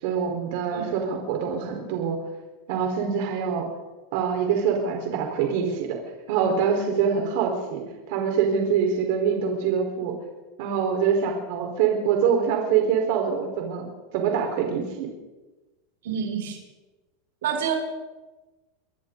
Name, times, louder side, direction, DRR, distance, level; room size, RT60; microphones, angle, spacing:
voice 1, 0.0-2.2 2.7-3.6 4.1-6.0 6.3-10.2 10.6-13.9 14.1-15.1, right 7 dB, 60° right, 1 dB, 4.7 m, -24 dB
voice 2, 16.0-16.6 17.4-17.8, right 8 dB, 90° right, 1 dB, 6.7 m, -27 dB
27.5 x 23.5 x 4.1 m, 1.2 s
supercardioid pair, 150°, 0 cm